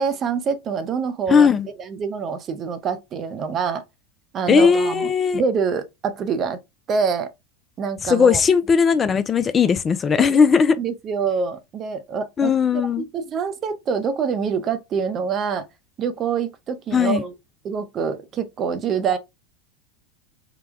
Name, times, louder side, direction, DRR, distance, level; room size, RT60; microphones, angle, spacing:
voice 1, 0.0-1.5 1.8-3.8 4.3-6.6 6.9-7.3 7.8-8.4 10.2-10.4 10.8-15.7 16.0-17.3 17.6-19.2, right 6 dB, 35° right, 0.6 m, -25 dB
voice 2, 1.3-1.7 4.5-5.4 8.0-10.8 12.4-13.1 16.9-17.2, left 6 dB, 25° left, 0.3 m, -17 dB
3.9 x 2.2 x 3.2 m
figure-of-eight pair, 80°, 0 cm